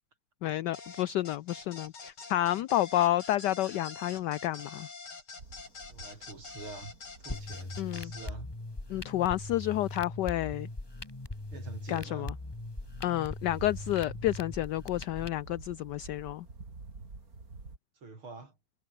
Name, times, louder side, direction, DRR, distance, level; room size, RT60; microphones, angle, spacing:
voice 1, 0.4-4.9 7.8-8.1 8.9-10.7 11.9-12.3 13.0-16.5, left 14 dB, 70° left, 1.1 m, -30 dB
sound 1, 0.7-8.3, left 4 dB, 90° left, 5.0 m, -46 dB
sound 2, 5.4-17.8, right 3 dB, 45° right, 4.0 m, -51 dB
voice 2, 5.9-6.9 7.2-8.5 11.5-12.3 18.0-18.5, right 3 dB, 80° right, 5.9 m, -46 dB
sound 3, 7.3-15.3, left 2 dB, 15° left, 1.6 m, -41 dB
omnidirectional pair, 2.3 m